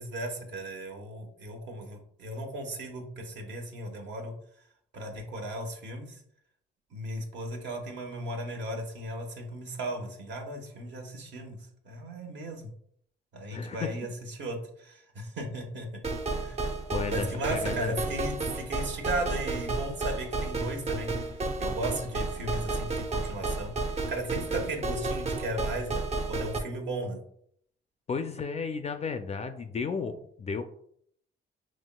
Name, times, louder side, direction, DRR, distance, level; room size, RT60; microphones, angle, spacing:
voice 1, 0.0-4.3 4.9-6.2 6.9-11.6 11.8-12.7 13.3-16.0 16.3-16.7 17.1-23.7 24.1-26.0 26.3-27.2, right 1 dB, 65° right, 2 dB, 1.1 m, -36 dB
voice 2, 13.5-13.9 16.9-17.9 28.1-30.6, left 5 dB, 35° left, 8 dB, 0.3 m, -33 dB
sound 1, 16.0-26.6, right 3 dB, 35° right, 0.6 m, -32 dB
5.3 x 3.1 x 2.2 m, 0.66 s
cardioid pair, 90°, 20 cm